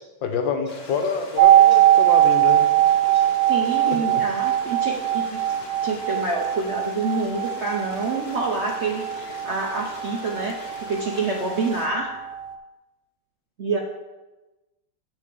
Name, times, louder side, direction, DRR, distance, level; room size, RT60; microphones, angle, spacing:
voice 1, 0.2-2.6 3.8-4.2, left 6 dB, 80° left, 6 dB, 1.6 m, -27 dB
Stream, 0.7-11.9, left 2 dB, 40° left, 1.1 m, -41 dB
sound 1, 1.4-11.1 11.4-11.5, right 12 dB, 80° right, 1.5 m, -20 dB
voice 2, 3.5-5.5 5.8-12.1 13.6-13.8, right 3 dB, 60° right, 0 dB, 0.7 m, -27 dB
8.6 x 3.8 x 6.7 m, 1.1 s
omnidirectional pair, 2.0 m